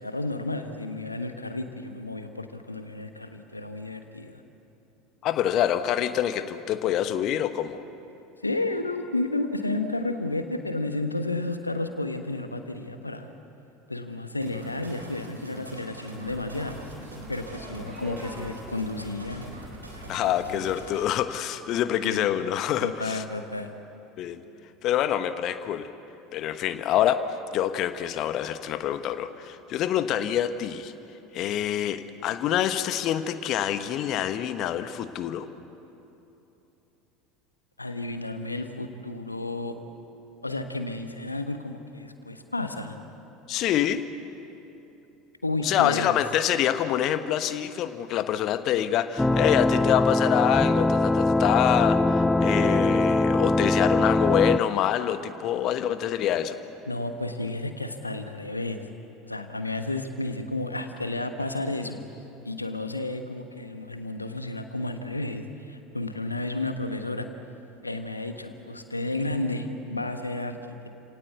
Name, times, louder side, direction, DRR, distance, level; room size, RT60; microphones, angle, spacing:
voice 1, 0.0-4.4 8.4-13.3 13.9-16.8 17.3-19.5 22.0-22.3 22.8-23.7 37.8-39.7 40.4-43.0 45.4-46.2 56.9-58.9 59.3-62.0 62.4-67.3 67.8-70.9, left 2 dB, 85° left, 7 dB, 1.3 m, -32 dB
voice 2, 5.2-7.8 20.1-23.2 24.2-24.4 24.8-25.9 26.3-27.2 27.5-30.9 31.3-35.5 43.5-44.0 45.6-56.6, left 11 dB, 45° left, 11 dB, 1.3 m, -26 dB
sound 1, 14.4-21.1, right 1 dB, 85° right, 3.6 m, -44 dB
sound 2, 16.2-21.2, right 1 dB, 15° right, 3.8 m, -44 dB
sound 3, 49.2-54.6, left 2 dB, 10° left, 0.5 m, -22 dB
29.5 x 18.0 x 8.3 m, 2.9 s
figure-of-eight pair, 70°, 0 cm